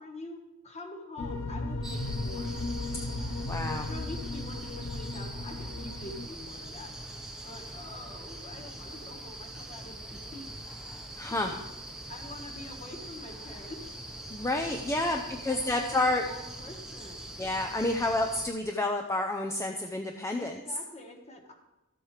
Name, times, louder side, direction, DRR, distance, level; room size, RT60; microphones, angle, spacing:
voice 1, 0.0-2.5 3.8-6.9 7.4-10.6 11.3-11.6 12.1-14.0 15.0-17.3 20.4-21.5, left 2 dB, 30° left, 2 dB, 1.3 m, -45 dB
sound 1, 1.2-6.3, left 2 dB, 75° left, 0.7 m, -35 dB
sound 2, 1.8-18.5, right 1 dB, 5° right, 1.0 m, -43 dB
voice 2, 3.5-3.9 11.2-11.6 14.3-16.3 17.4-20.6, left 2 dB, 15° left, 3 dB, 0.5 m, -29 dB
13.5 x 7.8 x 3.3 m, 0.97 s
head